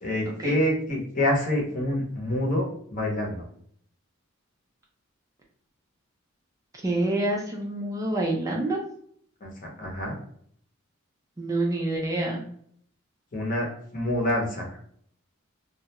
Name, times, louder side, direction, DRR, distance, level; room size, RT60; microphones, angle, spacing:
voice 1, 0.0-3.4 9.4-9.5 9.8-10.2 13.3-14.8, left 1 dB, 40° left, -1 dB, 0.7 m, -27 dB
voice 2, 6.8-8.8 11.4-12.5, right 2 dB, 15° right, -1 dB, 0.3 m, -27 dB
2.3 x 2.1 x 2.8 m, 0.62 s
head